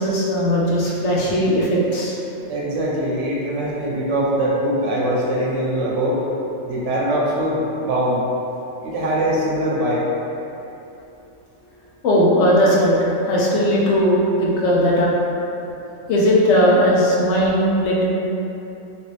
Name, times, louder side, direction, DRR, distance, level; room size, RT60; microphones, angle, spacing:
voice 1, 0.0-2.1 12.0-15.1 16.1-18.0, equal, 70° left, -4 dB, 0.9 m, -18 dB
voice 2, 2.5-6.2 6.7-8.2 8.8-10.0, right 1 dB, 75° right, -5 dB, 0.9 m, -22 dB
3.0 x 2.6 x 3.1 m, 2.9 s
omnidirectional pair, 1.3 m